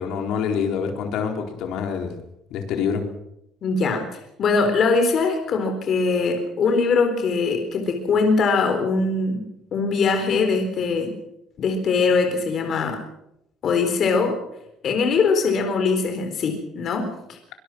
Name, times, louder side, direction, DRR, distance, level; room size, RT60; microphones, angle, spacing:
voice 1, 0.0-2.2 2.5-3.1, left 6 dB, 70° left, 4 dB, 4.0 m, -26 dB
voice 2, 3.6-4.1 4.4-9.4 9.7-11.1 11.6-13.0 13.6-14.4 14.8-17.5, left 4 dB, 45° left, 5 dB, 3.9 m, -22 dB
24.0 x 21.0 x 6.0 m, 0.80 s
cardioid pair, 150°, 0 cm